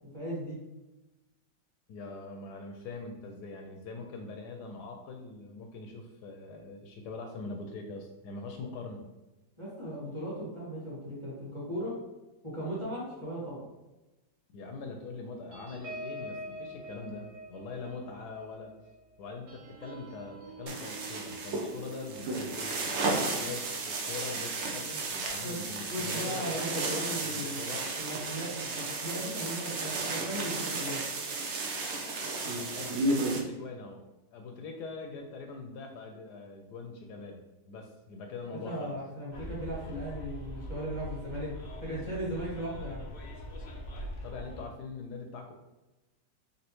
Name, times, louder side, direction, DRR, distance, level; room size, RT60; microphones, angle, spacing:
voice 1, 0.1-0.6 9.6-11.9 12.4-13.6 25.4-25.6 25.9-27.6 28.0-31.0 38.6-41.5 41.8-43.1, equal, 20° right, -7 dB, 1.3 m, -37 dB
voice 2, 1.9-9.0 14.5-18.7 19.2-22.8 23.4-26.9 27.2-27.9 32.5-34.0 34.3-38.9 44.2-45.5, left 3 dB, 75° left, 3 dB, 1.1 m, -43 dB
sound 1, 15.5-24.4 24.9-25.1 25.4-25.7, right 1 dB, 75° right, 1.6 m, -47 dB
sound 2, 20.7-33.4, right 3 dB, 60° right, 0.7 m, -33 dB
Bus, 39.3-44.6, equal, 90° left, 0.4 m, -42 dB
4.0 x 3.5 x 2.9 m, 1.0 s
omnidirectional pair, 1.9 m